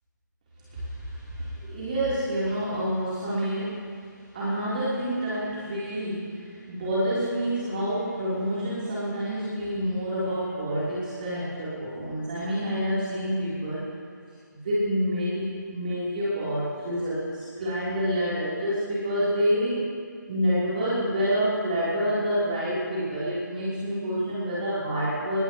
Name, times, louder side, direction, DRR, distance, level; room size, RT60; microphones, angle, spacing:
voice 1, 0.7-4.0 4.3-13.9 14.5-19.9 20.3-25.4, equal, 25° right, -10 dB, 3.6 m, -28 dB
20.0 x 18.0 x 3.1 m, 2.1 s
figure-of-eight pair, 175°, 11 cm